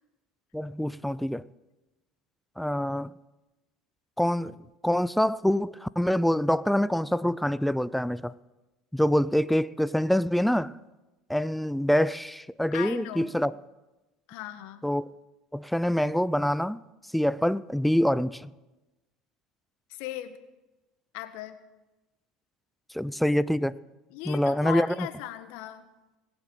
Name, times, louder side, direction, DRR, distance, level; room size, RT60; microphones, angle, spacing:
voice 1, 0.5-1.4 2.6-3.1 4.2-4.5 4.8-8.3 8.9-10.8 11.3-13.6 14.8-15.0 15.5-16.8 17.1-18.5 22.9-23.8 24.3-25.1, equal, 5° left, 0.5 m, -25 dB
voice 2, 12.7-13.3 14.3-14.8 19.9-20.4 21.1-21.6 24.1-25.8, left 13 dB, 65° left, 1.3 m, -37 dB
20.0 x 7.9 x 7.9 m
hypercardioid pair, 75°, 3 cm